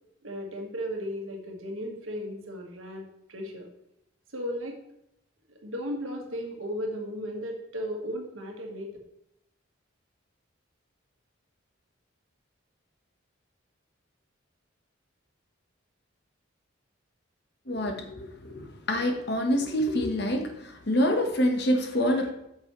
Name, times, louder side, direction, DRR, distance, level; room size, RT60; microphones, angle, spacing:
voice 1, 0.2-3.7 4.3-4.8 5.6-8.9, equal, 80° right, 1 dB, 1.6 m, -35 dB
voice 2, 17.7-22.3, equal, 55° left, 5 dB, 1.1 m, -26 dB
9.0 x 6.3 x 3.1 m, 0.80 s
head